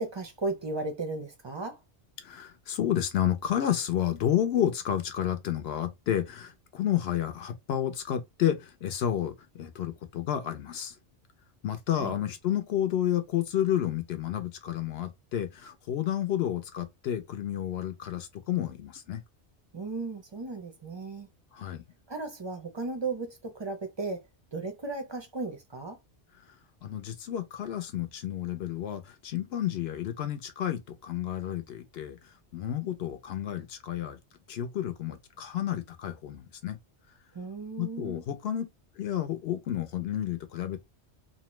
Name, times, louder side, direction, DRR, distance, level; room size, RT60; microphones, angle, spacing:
voice 1, 0.0-1.8 12.0-12.2 19.7-21.3 22.1-24.2 24.5-26.0 37.3-38.2, right 3 dB, 40° right, 0.4 m, -35 dB
voice 2, 2.2-10.9 11.6-19.2 21.5-21.8 26.8-34.2 34.5-36.8 37.8-38.6 39.0-40.8, left 11 dB, 70° left, 0.8 m, -31 dB
2.7 x 2.1 x 3.0 m
omnidirectional pair, 1.2 m